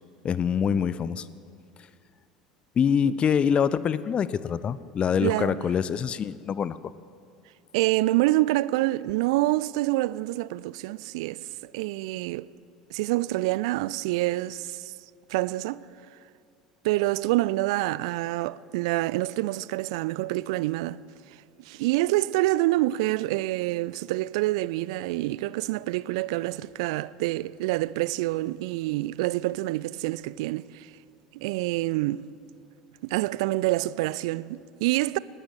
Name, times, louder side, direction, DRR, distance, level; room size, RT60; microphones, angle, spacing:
voice 1, 0.2-1.3 2.8-6.8, left 7 dB, 30° left, 0.6 m, -25 dB
voice 2, 5.2-5.7 7.7-12.5 12.9-14.9 15.3-15.8 16.8-21.0 21.7-30.9 31.3-32.3 33.0-35.2, right 18 dB, 55° right, 0.5 m, -27 dB
19.0 x 17.5 x 9.3 m
figure-of-eight pair, 70°, 4 cm